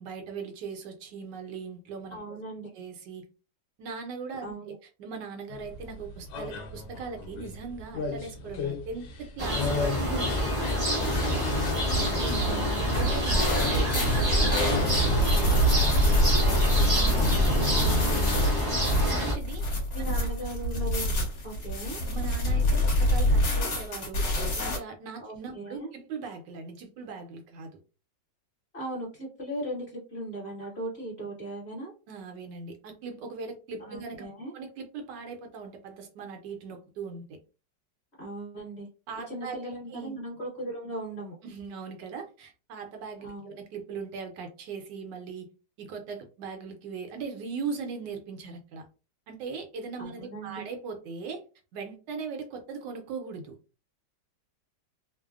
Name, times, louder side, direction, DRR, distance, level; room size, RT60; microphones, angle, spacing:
voice 1, 0.0-2.2 2.7-3.2 3.8-10.9 12.6-17.6 19.0-19.6 20.2-20.3 22.1-24.3 24.6-27.7 32.1-34.3 34.5-37.4 39.1-40.2 41.4-45.5 45.8-48.9 49.3-51.4 51.7-53.6, right 5 dB, 75° right, 4 dB, 1.2 m, -39 dB
voice 2, 2.1-2.7 4.4-4.7 11.8-12.9 17.7-18.4 19.9-21.1 21.4-22.0 25.2-25.9 28.7-31.9 33.8-34.5 38.2-38.9 39.3-41.3 43.2-43.5 50.0-50.6, right 1 dB, 40° left, -4 dB, 1.3 m, -38 dB
sound 1, 5.5-11.0, left 5 dB, 85° left, 1.4 m, -35 dB
sound 2, 9.4-19.3, equal, 35° right, 0.5 m, -27 dB
sound 3, 11.0-24.8, equal, 60° left, 1.4 m, -26 dB
3.2 x 2.0 x 2.3 m, 0.33 s
omnidirectional pair, 2.0 m